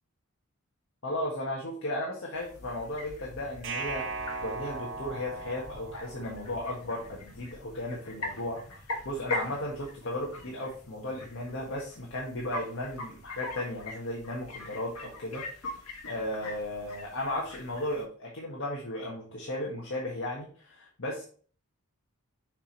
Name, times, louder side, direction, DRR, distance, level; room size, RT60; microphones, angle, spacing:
voice 1, 1.0-8.6 9.0-15.7 16.0-21.2, left 1 dB, 60° left, -3 dB, 1.6 m, -35 dB
sound 1, 2.3-18.0, left 2 dB, 85° left, 1.6 m, -42 dB
sound 2, 3.6-6.7, right 4 dB, 55° right, 0.9 m, -38 dB
6.7 x 5.1 x 3.1 m, 0.43 s
head